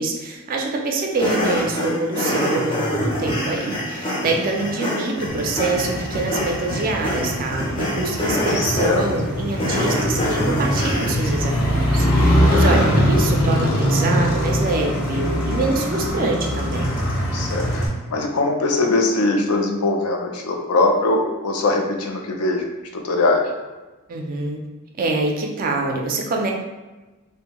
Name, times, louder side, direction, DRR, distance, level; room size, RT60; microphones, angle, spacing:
voice 1, 0.0-16.9 24.1-24.6 25.0-26.5, right 3 dB, 40° right, 1 dB, 0.3 m, -25 dB
sound 1, 1.1-11.4, equal, 25° left, 0.5 m, -25 dB
Motorcycle, 5.3-17.9, equal, 65° left, 0.8 m, -22 dB
voice 2, 8.5-9.0 17.3-22.7 22.9-23.4, left 2 dB, 80° left, 2 dB, 0.4 m, -21 dB
2.6 x 2.1 x 2.9 m, 1.2 s
head